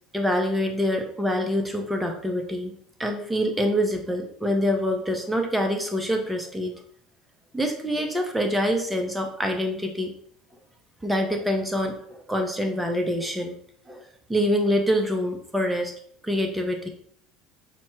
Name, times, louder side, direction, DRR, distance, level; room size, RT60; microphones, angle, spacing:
voice 1, 0.1-2.7 3.0-6.8 7.5-10.1 11.0-13.5 13.9-14.0 14.3-15.9 16.2-16.9, equal, 5° right, 3 dB, 0.6 m, -25 dB
5.8 x 2.0 x 4.4 m, 0.62 s
cardioid pair, 125°, 0 cm